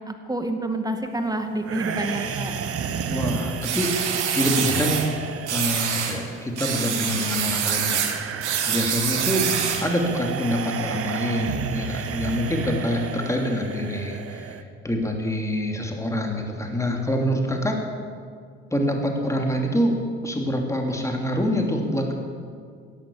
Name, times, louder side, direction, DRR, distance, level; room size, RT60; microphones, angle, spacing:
voice 1, 0.1-2.7, right 1 dB, 10° right, 5 dB, 2.1 m, -28 dB
sound 1, 1.6-14.6, right 7 dB, 45° right, 1.2 m, -32 dB
voice 2, 3.1-3.9 4.3-5.0 5.5-8.1 8.7-9.5 9.8-14.4 14.8-17.8 18.7-19.9 20.2-22.1, equal, 10° left, 2 dB, 2.9 m, -25 dB
sound 2, 3.6-5.1 5.5-6.2 6.6-9.9, right 8 dB, 85° right, 1.4 m, -26 dB
17.0 x 11.5 x 7.2 m, 2.1 s
hypercardioid pair, 55°, 34 cm